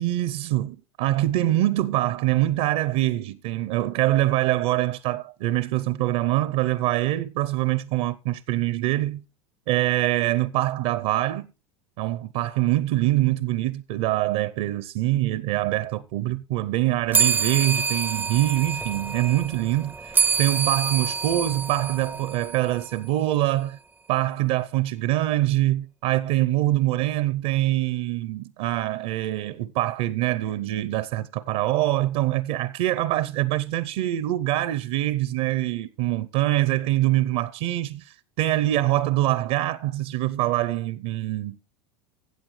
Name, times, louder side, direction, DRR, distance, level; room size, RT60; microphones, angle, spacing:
voice 1, 0.0-9.2 9.7-11.5 12.0-23.8 24.1-41.6, right 15 dB, 60° right, 0.6 m, -24 dB
sound 1, 17.1-23.0, right 5 dB, 10° right, 0.4 m, -26 dB
15.5 x 7.6 x 3.2 m
hypercardioid pair, 105°, 16 cm